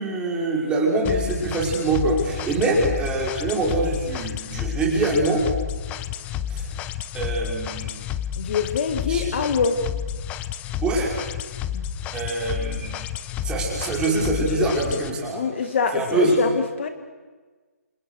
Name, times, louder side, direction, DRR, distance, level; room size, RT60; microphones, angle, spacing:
voice 1, 0.0-5.5 6.5-6.7 7.1-8.0 9.1-9.3 10.8-11.1 12.1-13.0 13.4-15.4 15.9-16.4, right 2 dB, 10° right, -2 dB, 5.7 m, -24 dB
sound 1, 1.0-15.1, left 9 dB, 15° left, 0.8 m, -31 dB
voice 2, 8.4-9.8 11.7-11.8 14.6-14.7 15.3-16.9, left 5 dB, 45° left, 8 dB, 2.2 m, -24 dB
28.0 x 28.0 x 6.6 m, 1.4 s
hypercardioid pair, 155°, 9 cm